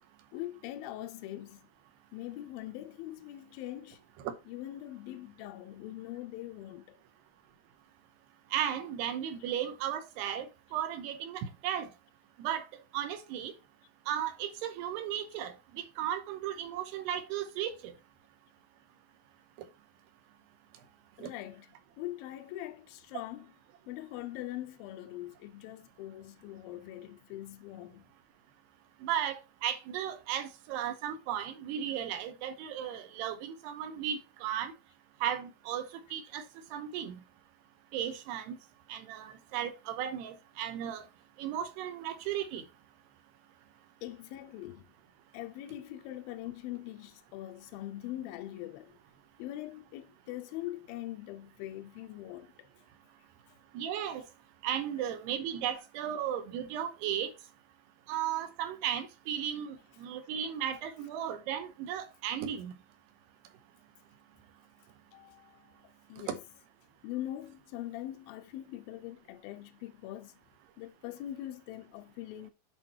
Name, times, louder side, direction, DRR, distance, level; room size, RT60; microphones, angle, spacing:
voice 1, 0.3-1.7 2.1-4.0 4.5-7.0 21.2-21.7 22.0-23.5 23.9-28.1 44.0-44.8 45.3-49.0 49.4-52.7 53.5-53.6 65.1-66.4 67.0-70.4 70.8-72.5, left 14 dB, 80° left, 2.1 m, -42 dB
voice 2, 8.5-11.9 12.4-12.7 12.9-13.5 14.1-17.9 21.2-21.3 29.0-34.7 35.2-35.8 36.1-36.4 36.7-37.2 37.9-38.6 38.9-41.0 41.4-42.6 53.7-54.2 54.6-57.3 58.1-62.7 66.3-66.4, right 10 dB, 85° right, 3.0 m, -35 dB
8.1 x 4.3 x 4.3 m
omnidirectional pair, 4.8 m